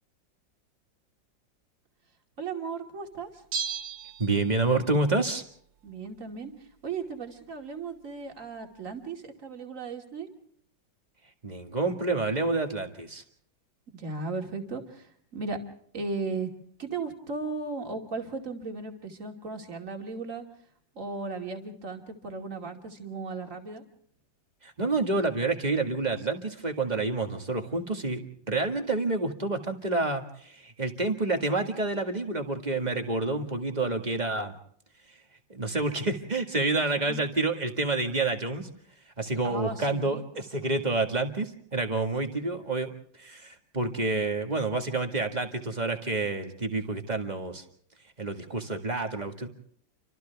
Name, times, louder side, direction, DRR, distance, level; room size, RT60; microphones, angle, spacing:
voice 1, 2.4-3.4 5.8-6.5 6.8-10.3 13.9-15.6 15.9-16.5 16.8-20.4 20.9-23.8 37.1-37.2 39.4-40.2, right 4 dB, 45° right, 3 dB, 2.8 m, -36 dB
Bell, 3.5-4.9 5.2-5.3, right 6 dB, 65° right, 1.7 m, -35 dB
voice 2, 4.2-5.4 11.4-13.2 24.6-34.5 35.5-38.7 39.2-42.9 43.2-47.6 48.2-49.5, right 3 dB, 25° right, 5 dB, 1.9 m, -28 dB
29.5 x 25.5 x 3.5 m, 0.63 s
omnidirectional pair, 2.0 m